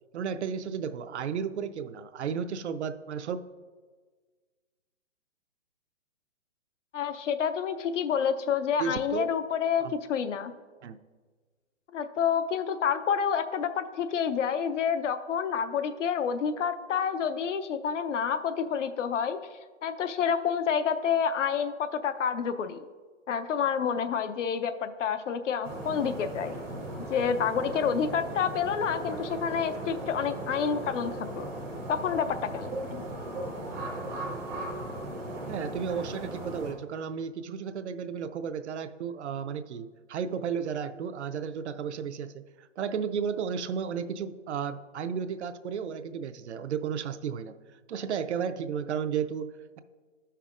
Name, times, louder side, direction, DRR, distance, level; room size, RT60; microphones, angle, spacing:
voice 1, 0.1-3.4 8.8-9.3 9.8-9.9 10.8-11.0 35.5-49.8, right 7 dB, 65° right, 11 dB, 0.5 m, -33 dB
voice 2, 6.9-10.5 11.9-19.4 19.8-22.8 23.3-26.5 27.1-31.5 31.9-33.0, left 7 dB, 80° left, 10 dB, 0.6 m, -28 dB
sound 1, 25.6-36.7, right 1 dB, 10° right, 0.5 m, -37 dB
13.0 x 5.6 x 2.4 m, 1.5 s
hypercardioid pair, 160°, 36 cm